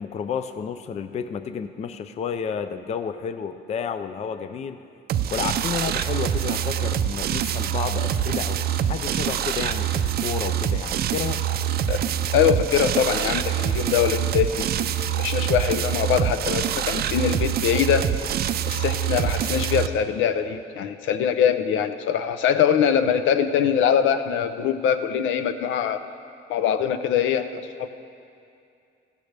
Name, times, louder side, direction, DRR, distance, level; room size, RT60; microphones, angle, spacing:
voice 1, 0.0-4.8 5.3-11.4, left 7 dB, 35° left, 10 dB, 0.4 m, -31 dB
sound 1, 5.1-19.9, right 10 dB, 50° right, 0.4 m, -25 dB
voice 2, 12.3-14.9 15.2-18.1 18.7-26.0 26.5-27.9, left 8 dB, 75° left, 10 dB, 0.7 m, -23 dB
16.0 x 14.5 x 3.4 m, 2.5 s
cardioid pair, 140°, 20 cm